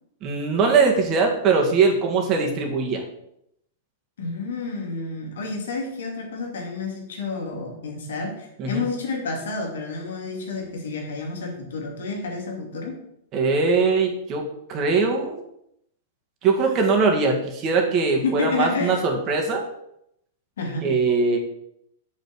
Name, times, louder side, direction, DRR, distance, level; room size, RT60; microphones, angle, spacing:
voice 1, 0.2-3.0 8.6-8.8 13.3-15.4 16.4-19.6 20.8-21.4, right 4 dB, 35° right, 1 dB, 2.1 m, -21 dB
voice 2, 4.2-13.0 18.2-19.0 20.6-20.9, left 4 dB, 75° left, 2 dB, 2.3 m, -30 dB
7.2 x 5.5 x 6.3 m, 0.77 s
hypercardioid pair, 115°, 0 cm